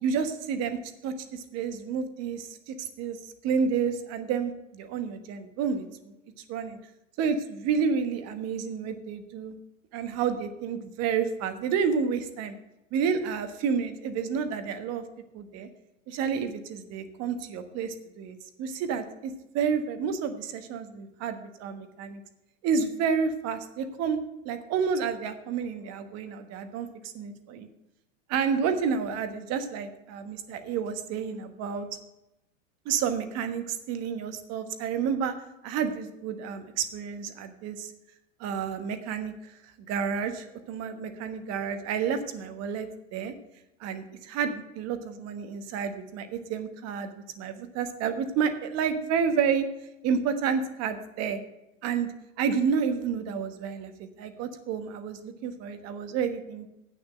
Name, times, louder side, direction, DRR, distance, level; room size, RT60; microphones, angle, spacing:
voice 1, 0.0-6.1 6.5-6.8 7.2-9.5 9.9-12.5 12.9-15.0 15.3-15.7 16.1-22.2 22.6-24.2 24.4-27.7 28.3-31.9 32.8-35.3 35.6-37.9 38.4-39.5 39.9-43.3 43.8-47.1 47.4-49.6 50.0-51.4 51.8-52.1 52.4-56.7, right 6 dB, 40° right, 9 dB, 1.3 m, -30 dB
8.6 x 6.7 x 7.5 m, 0.93 s
hypercardioid pair, 110°, 39 cm